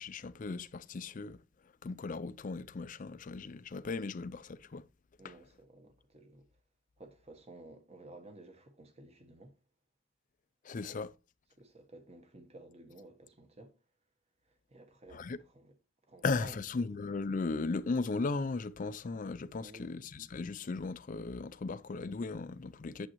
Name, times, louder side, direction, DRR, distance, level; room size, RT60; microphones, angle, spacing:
voice 1, 0.0-1.4 1.8-4.9 5.2-5.3 10.6-11.1 15.1-15.4 16.2-23.1, left 3 dB, 40° left, 0.4 m, -37 dB
voice 2, 5.2-6.5 7.0-9.6 11.6-13.8 14.5-15.7 16.1-16.6 19.5-20.0, right 2 dB, 30° right, 1.2 m, -53 dB
8.5 x 7.7 x 3.0 m
head